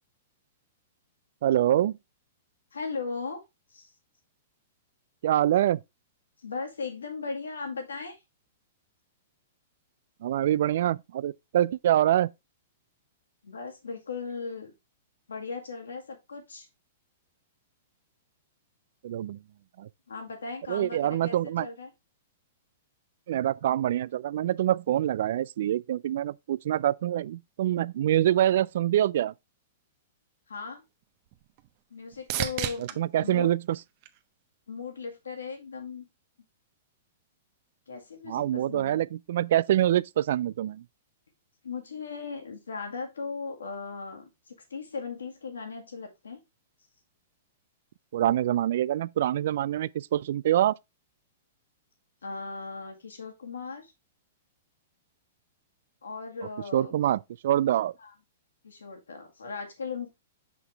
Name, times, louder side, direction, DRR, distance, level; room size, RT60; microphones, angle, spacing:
voice 1, 1.4-2.0 5.2-5.8 10.2-12.3 19.0-19.4 19.8-19.9 20.7-21.7 23.3-29.3 33.0-33.6 38.3-40.8 48.1-50.7 56.7-57.9, right 12 dB, 65° right, 0.3 m, -25 dB
voice 2, 2.7-3.4 3.7-3.9 6.4-8.2 13.4-14.7 15.3-16.7 20.1-21.9 30.5-30.9 31.9-33.5 34.7-36.1 37.9-39.0 41.6-46.4 52.2-53.9 56.0-56.9 58.0-58.1 58.6-60.1, left 4 dB, 85° left, 2.0 m, -37 dB
sound 1, 30.6-34.8 35.3-35.9 43.7-43.8, right 13 dB, 45° right, 0.9 m, -38 dB
6.0 x 5.9 x 3.4 m
hypercardioid pair, 115°, 0 cm